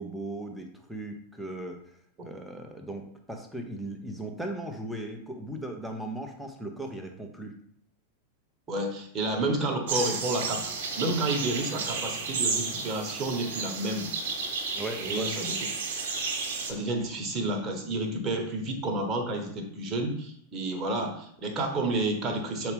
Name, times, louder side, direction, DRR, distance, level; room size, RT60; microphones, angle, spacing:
voice 1, 0.0-1.8 2.2-7.5 14.7-15.4, right 1 dB, ahead, 3 dB, 0.9 m, -37 dB
voice 2, 8.7-14.1 15.0-15.5 16.6-22.7, right 2 dB, 25° right, 2 dB, 1.3 m, -30 dB
sound 1, 9.9-16.7, right 4 dB, 50° right, 1.4 m, -32 dB
6.9 x 4.4 x 3.5 m, 0.65 s
figure-of-eight pair, 90°, 0 cm